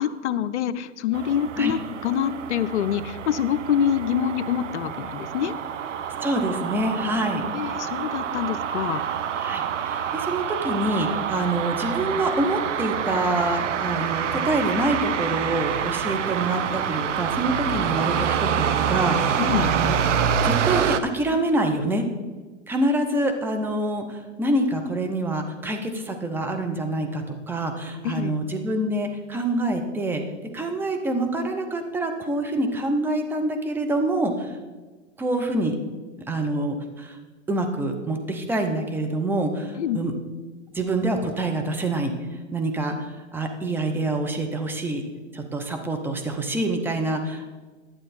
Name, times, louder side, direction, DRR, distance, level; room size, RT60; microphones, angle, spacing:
voice 1, 0.0-5.5 7.5-9.0 19.4-19.7 28.0-28.4 39.8-40.2, left 9 dB, 65° left, 13 dB, 0.7 m, -26 dB
sound 1, 1.1-21.0, right 8 dB, 70° right, 0.8 m, -27 dB
voice 2, 6.2-7.4 7.9-8.0 9.4-20.0 20.4-22.0 22.7-30.2 30.5-34.5 35.2-35.7 36.3-37.2 37.5-40.1 40.7-42.1 42.5-45.0 45.3-47.5, right 1 dB, 5° right, 4 dB, 0.7 m, -26 dB
11.5 x 7.6 x 4.2 m, 1.3 s
hypercardioid pair, 130°, 38 cm